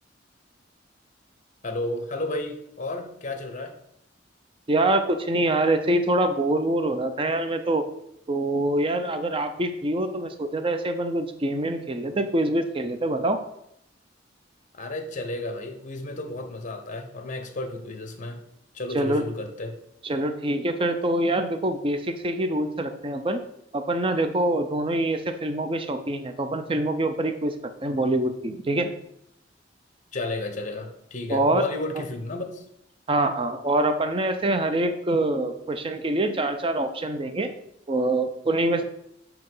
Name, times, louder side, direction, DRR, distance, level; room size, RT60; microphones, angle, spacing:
voice 1, 1.6-3.7 14.7-18.4 18.7-19.7 30.1-32.6, left 2 dB, 45° left, 6 dB, 0.8 m, -32 dB
voice 2, 4.7-7.8 8.3-13.4 18.9-19.2 20.0-23.4 23.7-27.5 27.8-28.9 31.3-31.6 33.1-37.5 37.9-38.8, right 1 dB, 30° right, 8 dB, 0.5 m, -25 dB
7.6 x 2.9 x 5.4 m, 0.77 s
head